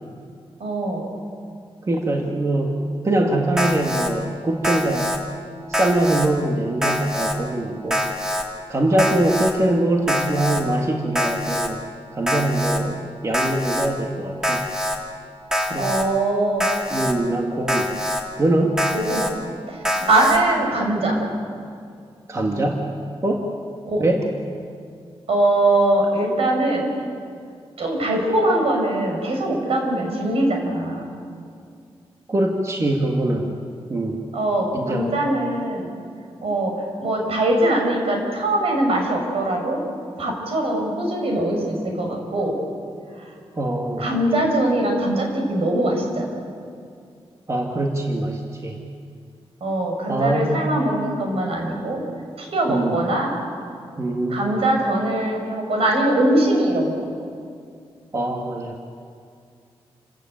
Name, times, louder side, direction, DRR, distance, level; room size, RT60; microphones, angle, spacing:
voice 1, 0.6-1.1 8.9-9.1 15.8-16.7 18.9-19.3 19.7-21.2 23.9-24.1 25.3-26.9 27.8-31.0 34.3-35.9 36.4-39.8 40.2-42.5 44.0-46.5 49.6-52.0 52.4-53.3 54.3-57.0, right 1 dB, 75° right, 1 dB, 6.0 m, -22 dB
voice 2, 1.8-2.7 3.0-5.1 5.7-8.0 8.7-11.8 12.1-14.7 15.7-15.9 16.9-17.9 18.4-18.8 22.3-22.9 23.2-23.5 24.0-24.2 32.3-33.5 33.9-34.2 34.7-35.1 43.6-44.0 47.5-48.8 50.1-50.7 52.7-53.0 54.0-54.5 58.1-58.7, right 1 dB, 30° right, 1 dB, 1.8 m, -23 dB
Alarm, 3.6-4.1 4.6-5.2 5.7-6.3 6.8-7.4 7.9-8.4 9.0-9.5 10.1-10.6 11.2-11.7 12.3-12.8 13.3-13.9 14.4-15.0 15.5-16.0 16.6-17.1 17.7-18.2 18.8-19.3 19.9-20.4, equal, 5° right, 2.3 m, -24 dB
28.5 x 14.5 x 9.1 m, 2.3 s
wide cardioid pair, 155°, 10 cm